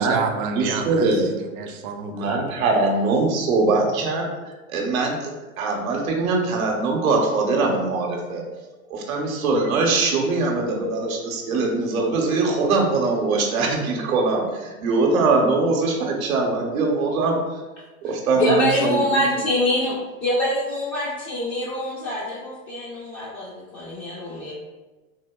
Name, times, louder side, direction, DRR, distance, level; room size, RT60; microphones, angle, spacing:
voice 1, 0.0-2.5, right 5 dB, 40° right, 5 dB, 0.4 m, -30 dB
voice 2, 0.5-1.3 2.1-4.3 4.7-5.3 5.6-8.4 8.9-17.4 18.0-19.3, right 3 dB, 75° right, 0 dB, 0.8 m, -22 dB
voice 3, 18.3-19.9 20.2-24.5, left 1 dB, 30° left, -6 dB, 0.6 m, -24 dB
3.6 x 2.7 x 2.2 m, 1.2 s
hypercardioid pair, 115°, 42 cm